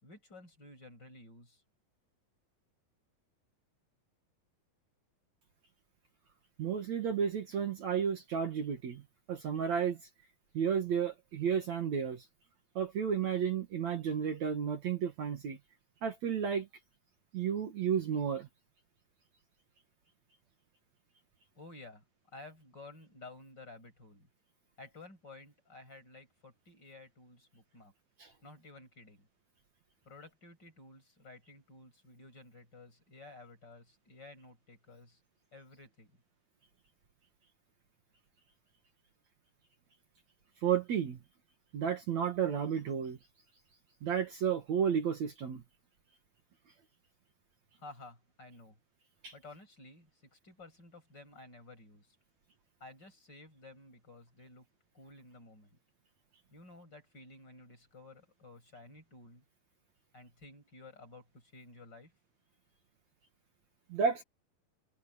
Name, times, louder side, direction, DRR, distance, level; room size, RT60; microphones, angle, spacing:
voice 1, 0.0-1.6 21.5-22.0 22.3-24.3 24.8-27.9 28.4-29.3 30.1-35.2 35.5-36.1 47.8-48.8 49.3-52.2 52.8-54.7 54.9-55.8 56.5-59.4 60.1-62.1, left 2 dB, 30° left, 7.6 m, -53 dB
voice 2, 6.6-9.0 9.3-10.0 10.5-12.2 12.8-15.6 16.0-16.7 17.3-18.5 28.2-28.3 40.6-41.2 41.7-43.2 44.0-45.6 49.2-49.3 63.9-64.2, right 7 dB, 55° right, 2.8 m, -32 dB
omnidirectional pair, 4.1 m